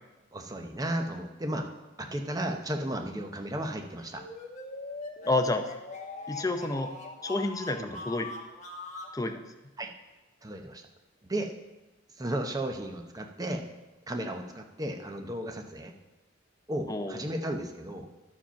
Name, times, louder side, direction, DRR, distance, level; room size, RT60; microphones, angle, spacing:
voice 1, 0.3-1.6 2.0-4.2 7.8-8.0 9.8-9.9 10.4-10.8 11.2-11.5 12.2-13.6 14.1-15.9 16.7-18.1, right 1 dB, 20° right, 3 dB, 0.7 m, -34 dB
sound 1, 4.2-9.2, left 2 dB, 35° left, 1.1 m, -41 dB
voice 2, 5.2-5.7 6.3-6.9 7.2-8.3 9.1-9.4 16.9-17.2, left 2 dB, 20° left, 6 dB, 0.6 m, -29 dB
12.0 x 5.0 x 5.7 m, 1.1 s
head